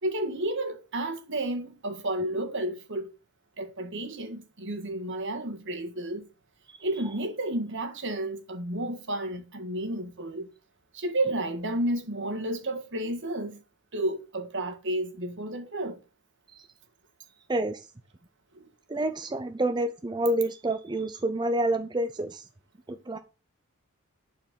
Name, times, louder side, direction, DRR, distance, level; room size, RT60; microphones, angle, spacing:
voice 1, 0.0-3.1 3.6-6.3 6.8-10.5 10.9-13.6 13.9-16.0 18.5-18.7, right 1 dB, 60° right, 1.7 m, -31 dB
voice 2, 17.5-17.9 18.9-22.5 22.9-23.2, right 1 dB, 20° right, 0.6 m, -28 dB
10.5 x 4.7 x 8.1 m
head